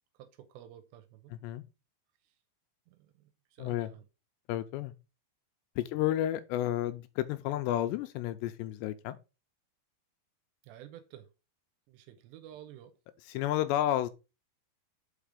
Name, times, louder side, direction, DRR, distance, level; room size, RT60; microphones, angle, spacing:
voice 1, 0.2-1.3 2.2-2.3 2.9-4.0 5.8-6.0 10.6-11.3 11.9-13.0, right 11 dB, 80° right, 2.8 m, -52 dB
voice 2, 3.6-3.9 4.5-4.9 5.8-9.2 13.3-14.1, left 13 dB, 80° left, 2.6 m, -31 dB
5.7 x 5.2 x 5.0 m
omnidirectional pair, 5.2 m